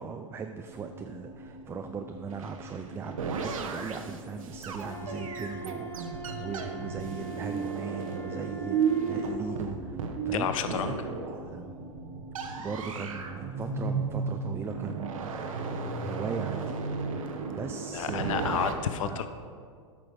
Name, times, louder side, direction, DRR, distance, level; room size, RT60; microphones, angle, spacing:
voice 1, 0.0-10.0 10.2-11.7 12.6-16.8 17.1-18.6 19.0-19.2, right 5 dB, 15° right, 5 dB, 0.3 m, -39 dB
sound 1, 0.7-17.5, right 5 dB, 55° right, 0.9 m, -36 dB
sound 2, 2.3-11.5 12.3-13.4 14.6-18.7, right 4 dB, 80° right, 0.9 m, -38 dB
Wind instrument woodwind instrument, 4.8-9.4, right 2 dB, 15° left, 0.8 m, -42 dB
voice 2, 10.3-11.0 17.9-19.3, left 8 dB, 75° left, 10 dB, 0.5 m, -30 dB
8.5 x 6.1 x 4.7 m, 2.2 s
hypercardioid pair, 110°, 17 cm